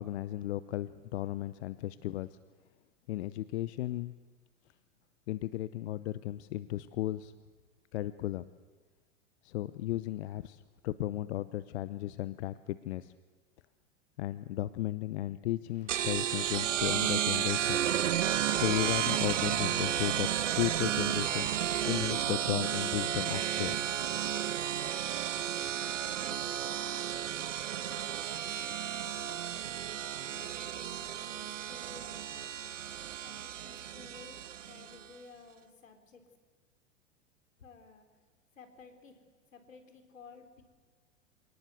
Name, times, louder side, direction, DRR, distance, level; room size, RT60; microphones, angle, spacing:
voice 1, 0.0-2.3 3.1-4.1 5.3-7.3 7.9-8.5 9.4-13.1 14.2-17.8 18.3-21.5 21.8-23.7, left 14 dB, 55° left, 15 dB, 0.8 m, -35 dB
sound 1, 15.7-27.5, left 3 dB, 20° left, 5.7 m, -61 dB
sound 2, 15.9-35.0, right 10 dB, 70° right, 1.2 m, -32 dB
voice 2, 29.1-29.6 30.3-32.6 33.2-36.4 37.6-38.1 38.6-39.2 39.5-40.6, left 4 dB, 80° left, 6 dB, 3.8 m, -55 dB
27.0 x 19.0 x 8.3 m, 1.4 s
figure-of-eight pair, 100°, 39 cm